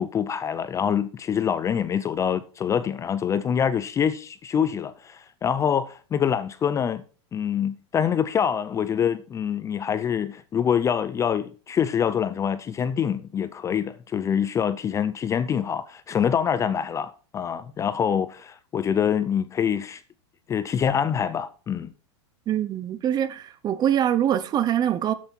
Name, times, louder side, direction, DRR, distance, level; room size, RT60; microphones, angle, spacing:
voice 1, 0.0-7.0 7.3-20.0 20.5-21.9, left 8 dB, 20° left, 0.5 m, -25 dB
voice 2, 22.5-25.1, right 10 dB, 25° right, 0.8 m, -24 dB
8.2 x 8.0 x 4.4 m
hypercardioid pair, 130°, 15 cm